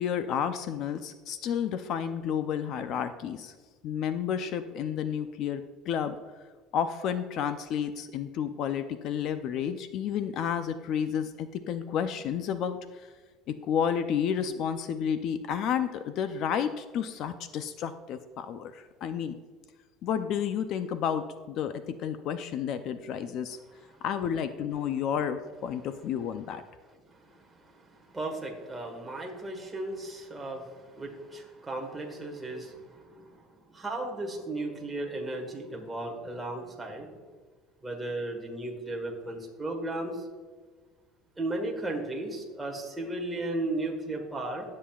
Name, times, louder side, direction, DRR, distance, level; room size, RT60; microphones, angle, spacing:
voice 1, 0.0-3.5 3.8-6.2 6.7-13.1 13.5-19.3 20.0-23.6 24.0-26.6, left 8 dB, 45° left, 10 dB, 0.4 m, -31 dB
voice 2, 28.1-33.3 33.7-37.1 37.8-40.2 41.4-44.6, right 2 dB, 10° right, 0 dB, 1.5 m, -35 dB
18.5 x 7.5 x 2.4 m, 1.5 s
cardioid pair, 165°, 0 cm